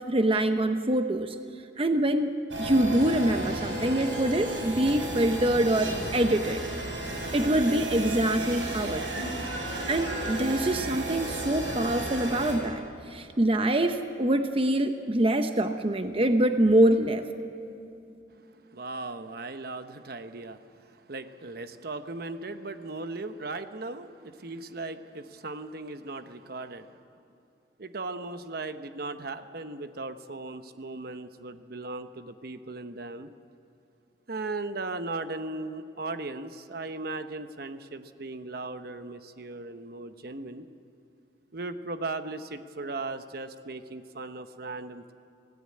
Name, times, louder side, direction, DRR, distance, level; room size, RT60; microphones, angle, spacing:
voice 1, 0.0-1.3 1.8-2.3 2.6-6.7 7.3-9.3 9.9-12.8 13.1-17.2, right 1 dB, 30° right, 7 dB, 0.9 m, -25 dB
sound 1, 2.5-12.5, right 1 dB, 85° right, 6.8 m, -33 dB
voice 2, 18.7-26.9 27.8-33.3 34.3-40.7 41.5-45.1, right 3 dB, 55° right, 9 dB, 1.0 m, -37 dB
25.0 x 17.5 x 8.6 m, 2.8 s
head